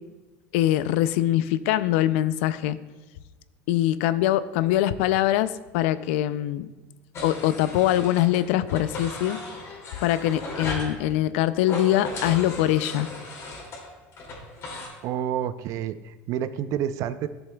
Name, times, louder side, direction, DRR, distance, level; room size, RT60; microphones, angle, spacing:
voice 1, 0.5-2.8 3.7-6.7 7.2-9.4 10.0-13.1, left 13 dB, 80° left, 15 dB, 0.4 m, -23 dB
sound 1, 7.1-8.4 8.7-10.9 11.6-14.9, left 2 dB, 40° left, 2.4 m, -36 dB
voice 2, 15.0-17.3, right 10 dB, 55° right, 13 dB, 0.4 m, -29 dB
11.5 x 7.0 x 2.2 m, 1.2 s
supercardioid pair, 120°, 7 cm